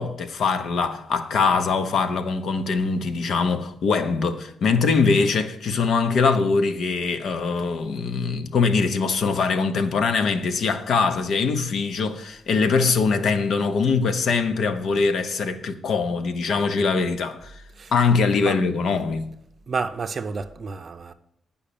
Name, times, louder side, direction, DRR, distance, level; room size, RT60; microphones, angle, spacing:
voice 1, 0.0-17.6 17.9-19.3, left 4 dB, 65° left, 0.9 m, -22 dB
voice 2, 19.7-21.1, right 4 dB, 40° right, 0.6 m, -30 dB
10.0 x 5.6 x 8.5 m
wide cardioid pair, 150°, 0 cm